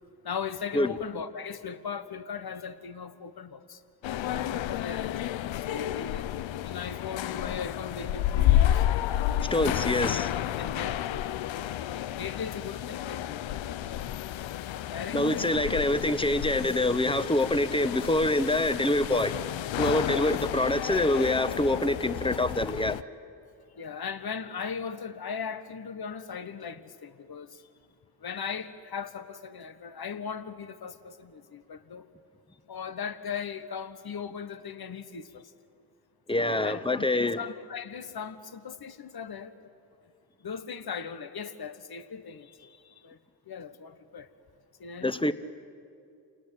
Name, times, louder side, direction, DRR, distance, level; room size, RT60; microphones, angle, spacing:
voice 1, 0.2-3.8 4.3-5.1 5.5-6.3 6.6-8.8 9.7-10.0 10.6-11.7 12.2-14.1 14.7-15.5 20.0-20.3 20.9-21.1 23.8-27.6 28.2-32.1 32.7-35.4 36.3-39.7 40.4-43.2 43.5-44.3 44.8-45.3, left 6 dB, 55° left, 1.3 m, -38 dB
sound 1, 4.0-23.0, left 12 dB, 80° left, 0.6 m, -31 dB
voice 2, 9.4-10.4 15.1-19.4 19.8-23.0 36.3-37.4 45.0-45.3, left 1 dB, 10° left, 1.2 m, -26 dB
28.0 x 19.0 x 9.1 m
supercardioid pair, 45°, 45 cm